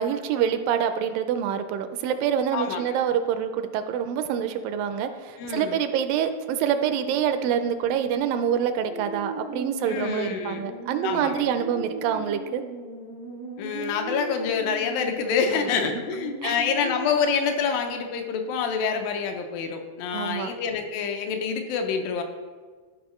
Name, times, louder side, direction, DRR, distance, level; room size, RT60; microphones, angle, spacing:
voice 1, 0.0-12.6 16.4-16.6 20.1-20.5, right 8 dB, 85° right, 9 dB, 2.2 m, -26 dB
voice 2, 2.5-3.0 5.4-5.8 9.9-10.7 11.0-11.4 13.6-22.2, left 6 dB, 85° left, 5 dB, 2.4 m, -27 dB
sound 1, 8.7-17.2, right 2 dB, 60° right, 0.4 m, -38 dB
13.5 x 4.7 x 3.1 m, 1.5 s
omnidirectional pair, 4.0 m